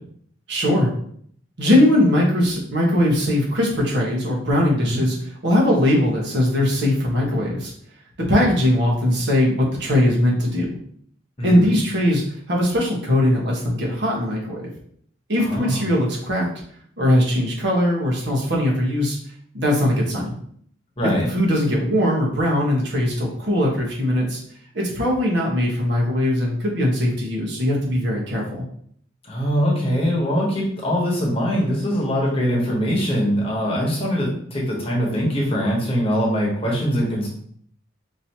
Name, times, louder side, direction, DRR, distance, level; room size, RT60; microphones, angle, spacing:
voice 1, 0.5-0.9 1.6-5.2 5.4-7.7 8.2-10.7 11.4-12.2 12.5-14.7 15.3-16.5 17.0-19.2 19.5-20.3 21.3-24.4 24.7-28.6, left 1 dB, 60° right, -3 dB, 1.3 m, -20 dB
voice 2, 11.4-11.7 15.4-15.8 21.0-21.3 29.2-37.3, equal, 30° left, -3 dB, 1.2 m, -22 dB
5.3 x 2.8 x 2.9 m, 0.63 s
head